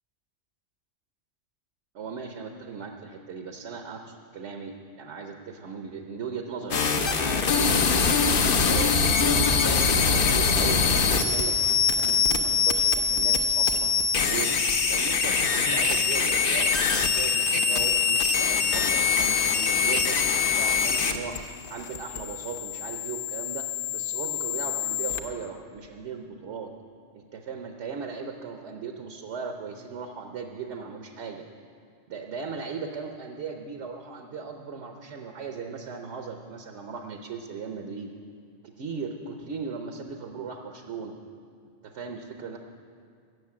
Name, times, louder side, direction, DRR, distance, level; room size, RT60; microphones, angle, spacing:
voice 1, 1.9-7.9 8.6-9.4 9.7-13.9 14.2-14.5 14.9-21.4 21.7-26.7 27.1-31.4 32.1-38.1 38.8-41.1 41.8-42.6, right 5 dB, 75° right, 4 dB, 1.1 m, -37 dB
sound 1, 6.7-25.2, left 5 dB, 55° left, 0.9 m, -24 dB
14.5 x 6.7 x 8.6 m, 2.2 s
omnidirectional pair, 1.2 m